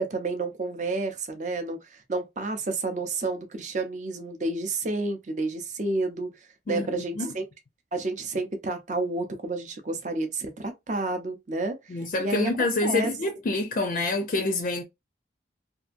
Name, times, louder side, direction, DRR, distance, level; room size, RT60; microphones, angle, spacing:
voice 1, 0.0-6.3 6.7-7.4 7.9-12.5 12.8-13.1, right 2 dB, 40° right, 0.5 m, -30 dB
voice 2, 6.7-7.4 11.9-14.8, left 2 dB, 45° left, 0.4 m, -27 dB
2.7 x 2.5 x 2.5 m
head